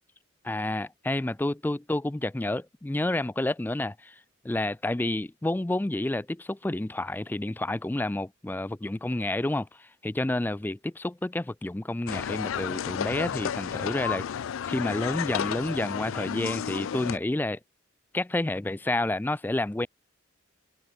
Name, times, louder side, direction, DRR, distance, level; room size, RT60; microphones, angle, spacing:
voice 1, 0.4-4.2 4.4-14.4 14.7-17.6 18.1-19.9, left 1 dB, 10° left, 0.3 m, -29 dB
sound 1, 12.1-17.2, left 8 dB, 85° left, 0.4 m, -32 dB
head